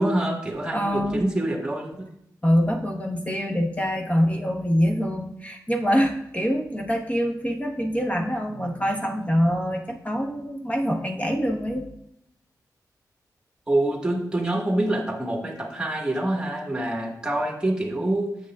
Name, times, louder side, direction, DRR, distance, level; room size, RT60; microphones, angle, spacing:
voice 1, 0.0-1.9 13.7-18.3, right 1 dB, 10° right, 0 dB, 1.6 m, -26 dB
voice 2, 0.7-1.2 2.4-11.9, equal, 20° left, 2 dB, 1.1 m, -24 dB
8.1 x 7.6 x 2.4 m, 0.75 s
cardioid pair, 75°, 7 cm